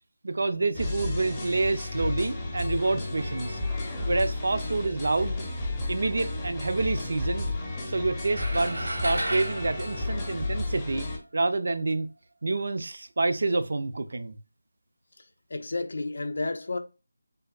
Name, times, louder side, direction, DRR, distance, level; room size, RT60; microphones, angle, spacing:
voice 1, 0.2-3.6 4.1-5.4 5.9-7.5 7.9-11.1 11.3-12.1 12.4-14.4, right 3 dB, 60° right, 0.3 m, -28 dB
sound 1, 0.7-11.2, left 2 dB, 15° left, 0.6 m, -32 dB
sound 2, 8.3-10.9, right 1 dB, 80° right, 0.8 m, -34 dB
voice 2, 15.5-16.8, left 2 dB, 60° left, 0.4 m, -31 dB
3.3 x 2.2 x 2.2 m
figure-of-eight pair, 165°, 0 cm